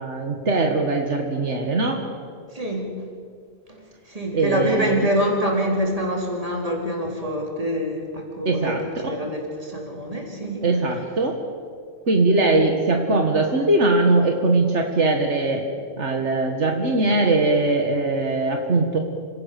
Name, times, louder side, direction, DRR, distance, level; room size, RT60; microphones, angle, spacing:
voice 1, 0.0-2.0 4.3-4.9 8.5-9.2 10.6-11.4 12.1-15.6 16.0-19.0, right 2 dB, 80° right, 3 dB, 2.0 m, -21 dB
voice 2, 2.5-2.9 3.8-8.8 9.0-10.7, equal, 30° right, 0 dB, 3.9 m, -25 dB
27.5 x 16.5 x 6.9 m, 2.2 s
omnidirectional pair, 1.2 m